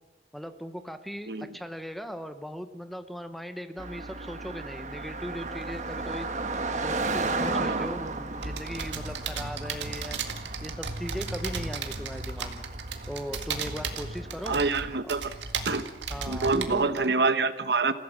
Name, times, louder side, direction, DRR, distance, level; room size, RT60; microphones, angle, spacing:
voice 1, 0.3-6.3 6.8-10.2 10.6-12.7 13.1-14.6 15.0-15.1 16.1-16.9, equal, ahead, 8 dB, 0.9 m, -38 dB
Car passing by, 3.8-14.9, right 3 dB, 40° right, 1.4 m, -35 dB
voice 2, 7.5-7.9 14.5-15.2 15.7-15.8 16.3-17.9, right 3 dB, 65° right, 11 dB, 1.1 m, -26 dB
sound 1, 8.4-17.1, right 4 dB, 85° right, 2.0 m, -35 dB
29.0 x 15.5 x 6.5 m, 1.2 s
head